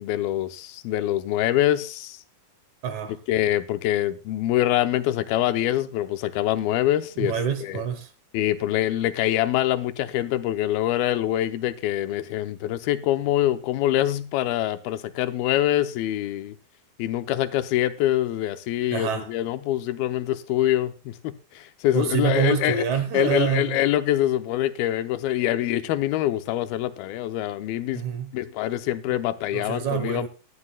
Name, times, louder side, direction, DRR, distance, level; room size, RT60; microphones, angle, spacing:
voice 1, 0.0-2.2 3.3-7.4 7.6-7.8 8.3-16.6 17.0-22.8 23.1-28.0 28.3-30.3, left 13 dB, 90° left, 2.7 m, -25 dB
voice 2, 2.8-3.2 7.2-8.1 18.9-19.3 21.9-23.8 27.9-28.3 29.5-30.3, right 8 dB, 65° right, 2.2 m, -26 dB
19.5 x 11.5 x 2.3 m
omnidirectional pair, 4.2 m